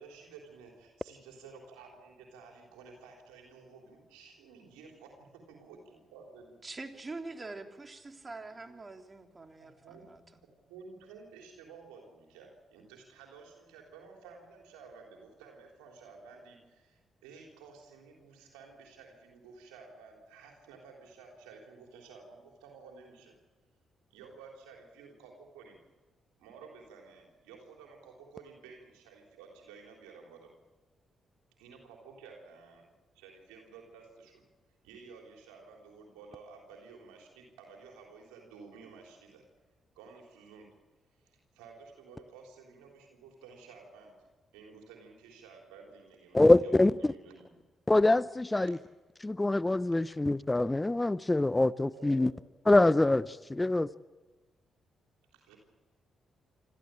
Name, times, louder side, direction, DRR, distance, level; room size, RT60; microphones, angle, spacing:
voice 1, 0.0-5.8 6.1-6.4 9.6-10.0 10.4-23.4 24.1-25.8 26.4-30.5 31.6-32.9 33.1-34.4 34.8-39.4 40.0-40.8 41.2-44.3 44.5-47.5 48.6-48.7 51.9-52.3 55.3-55.6, right 5 dB, 90° right, 3.6 m, -53 dB
voice 2, 6.6-9.7 10.0-10.2, right 3 dB, 30° right, 3.2 m, -44 dB
voice 3, 46.3-47.1 47.9-48.8 49.2-52.3 52.7-53.9, left 2 dB, 20° left, 0.6 m, -25 dB
26.0 x 14.5 x 9.0 m
supercardioid pair, 50°, 0 cm